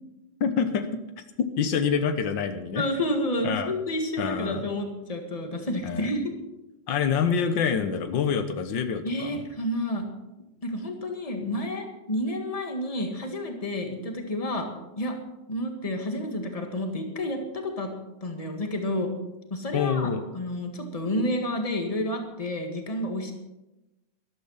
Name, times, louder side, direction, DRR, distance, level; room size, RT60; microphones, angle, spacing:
voice 1, 0.4-0.9 1.6-2.8 3.4-3.7 4.2-4.6 5.8-6.0 6.9-9.4 19.7-20.2, left 6 dB, 85° left, 9 dB, 1.8 m, -26 dB
voice 2, 2.7-6.3 9.0-10.1 10.6-14.7 15.0-15.2 15.5-17.9 18.2-19.1 19.5-20.1 20.3-23.3, left 1 dB, 20° left, 4 dB, 1.8 m, -30 dB
13.0 x 12.5 x 5.7 m, 1.0 s
omnidirectional pair, 2.0 m